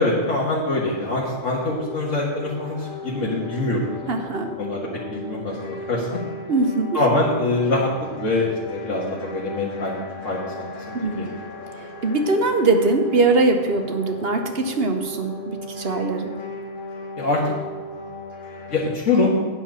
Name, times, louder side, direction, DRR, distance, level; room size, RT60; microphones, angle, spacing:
voice 1, 0.0-3.8 4.6-6.2 6.9-7.9 8.2-10.0 10.2-11.3 17.2-17.4 18.7-19.3, left 2 dB, 80° left, -4 dB, 1.9 m, -24 dB
sound 1, 0.9-19.0, left 1 dB, 45° left, 1.4 m, -37 dB
voice 2, 4.1-4.5 6.5-7.0 10.9-11.2 12.0-16.3, right 3 dB, 55° right, 5 dB, 1.0 m, -21 dB
8.7 x 5.8 x 7.3 m, 1.6 s
omnidirectional pair, 1.3 m